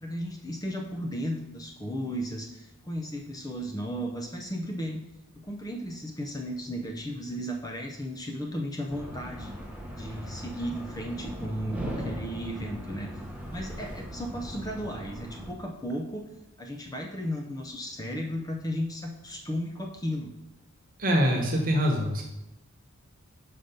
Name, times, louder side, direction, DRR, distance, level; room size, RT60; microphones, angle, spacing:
voice 1, 0.0-5.1 5.3-9.5 10.0-13.2 13.5-16.3 16.6-20.3, equal, 15° left, 2 dB, 0.5 m, -35 dB
sound 1, 8.9-15.5, equal, 5° right, 0.8 m, -39 dB
voice 2, 21.0-22.2, equal, 40° right, 1 dB, 1.2 m, -24 dB
5.7 x 5.1 x 5.2 m, 0.93 s
head